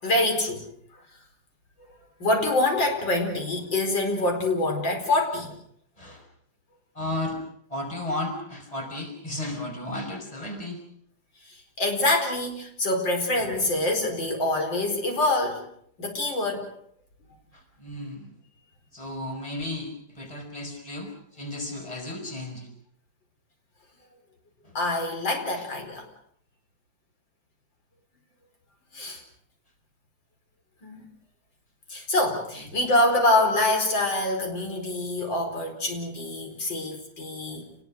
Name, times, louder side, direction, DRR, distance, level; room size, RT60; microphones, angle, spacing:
voice 1, 0.0-0.6 2.2-5.6 11.5-15.7 16.0-16.7 24.8-26.1 28.9-29.2 30.8-31.0 31.9-37.7, left 2 dB, 80° left, 3 dB, 5.3 m, -25 dB
voice 2, 6.9-7.4 7.7-10.8 17.5-18.3 18.9-22.7 24.6-24.8 25.6-25.7 32.5-32.7, left 1 dB, 20° left, 2 dB, 5.5 m, -34 dB
29.5 x 20.5 x 6.4 m, 0.66 s
omnidirectional pair, 2.0 m